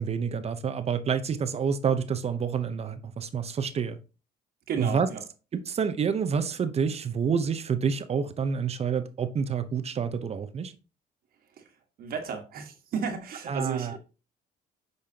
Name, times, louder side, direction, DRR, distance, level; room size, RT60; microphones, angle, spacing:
voice 1, 0.0-4.0 4.8-5.1 5.5-10.7 13.5-14.0, right 6 dB, 40° right, 0.8 m, -28 dB
voice 2, 4.7-5.2 11.6-11.7 12.0-14.0, right 6 dB, 60° right, 1.6 m, -33 dB
8.7 x 5.6 x 2.9 m
cardioid pair, 110°, 17 cm